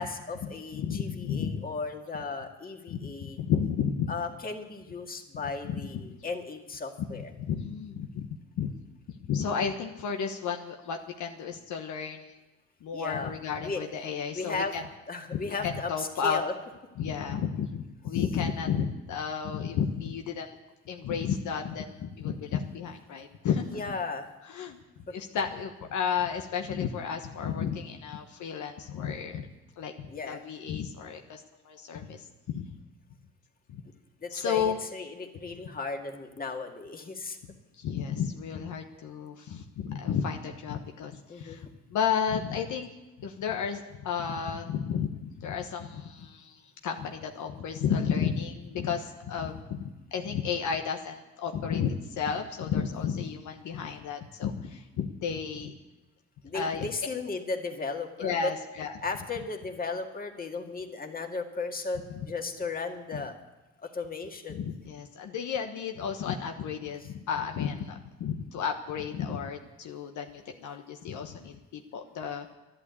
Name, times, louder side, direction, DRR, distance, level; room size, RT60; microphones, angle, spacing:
voice 1, 0.0-3.4 4.1-7.3 12.9-13.3 13.6-13.8 14.3-14.8 15.1-16.5 23.7-24.3 25.1-25.2 30.1-30.4 34.2-37.4 41.3-41.6 56.4-58.5 59.0-63.3 63.8-64.6, left 4 dB, 30° left, 3 dB, 2.0 m, -35 dB
voice 2, 0.7-1.6 2.9-4.1 5.6-6.1 7.0-8.7 9.1-12.3 12.8-14.8 15.3-16.4 17.0-20.5 20.9-24.0 24.5-24.8 25.1-29.5 29.8-32.7 33.7-33.8 34.3-34.8 37.8-42.9 43.2-49.8 50.1-55.7 56.5-56.9 58.2-59.0 63.1-63.2 64.5-72.5, left 7 dB, 75° left, 4 dB, 1.2 m, -32 dB
11.5 x 11.0 x 8.3 m, 1.1 s
cardioid pair, 90°, 30 cm